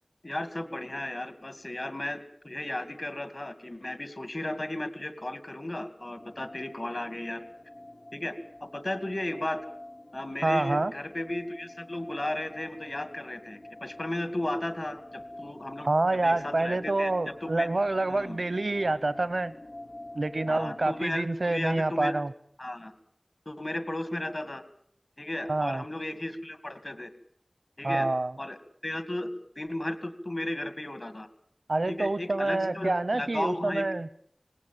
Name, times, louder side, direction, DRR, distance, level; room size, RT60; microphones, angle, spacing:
voice 1, 0.2-7.4 8.1-8.3 8.6-9.6 10.1-15.9 16.2-17.7 18.1-18.4 20.5-22.2 22.6-22.9 23.5-24.6 25.2-27.1 27.8-28.1 28.4-28.6 28.8-29.3 29.6-31.3 31.9-33.9, left 1 dB, 55° left, 11 dB, 2.3 m, -35 dB
sound 1, 6.2-21.0, left 1 dB, 80° left, 1.9 m, -47 dB
voice 2, 10.4-10.9 15.8-19.5 20.1-22.3 25.5-25.8 27.8-28.3 31.7-34.1, right 2 dB, 85° right, 16 dB, 0.8 m, -27 dB
20.5 x 18.0 x 9.0 m, 0.62 s
wide cardioid pair, 40°, 0 cm